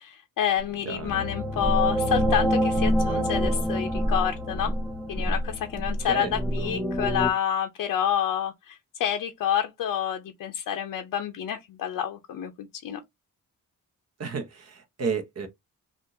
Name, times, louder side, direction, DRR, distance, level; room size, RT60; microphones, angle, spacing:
voice 1, 0.0-4.7 5.1-13.0, left 9 dB, 85° left, 0.6 m, -28 dB
sound 1, 0.6-7.3, equal, ahead, 0.5 m, -26 dB
voice 2, 0.8-1.2 6.0-6.7 14.2-15.5, right 5 dB, 50° right, 1.0 m, -32 dB
3.6 x 2.5 x 2.6 m
cardioid pair, 115°, 33 cm